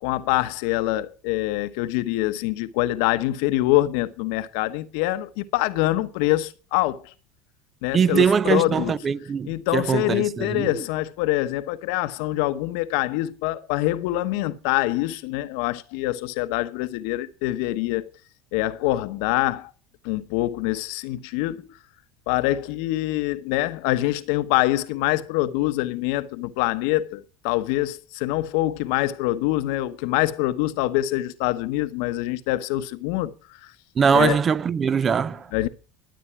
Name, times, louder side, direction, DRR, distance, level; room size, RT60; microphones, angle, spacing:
voice 1, 0.0-7.1 7.8-9.0 9.4-18.1 18.5-19.7 20.0-21.7 22.3-33.3 33.6-33.7 34.1-34.4 35.5-35.7, left 16 dB, 70° left, 1.0 m, -25 dB
voice 2, 7.9-10.8 34.0-35.5, right 6 dB, 35° right, 0.6 m, -22 dB
13.0 x 8.7 x 5.8 m
hypercardioid pair, 90°, 0 cm